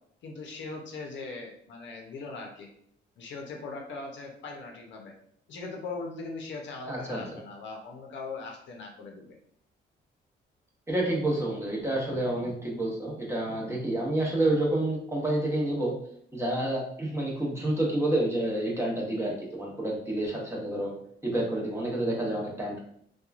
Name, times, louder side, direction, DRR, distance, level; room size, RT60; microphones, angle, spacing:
voice 1, 0.2-2.7 3.2-5.1 5.5-9.4, left 3 dB, 70° left, 1 dB, 0.6 m, -40 dB
voice 2, 6.9-7.4 10.9-15.9 16.3-20.9 21.2-22.8, right 1 dB, 15° right, -3 dB, 0.8 m, -29 dB
2.9 x 2.2 x 2.4 m, 0.67 s
cardioid pair, 90°, 20 cm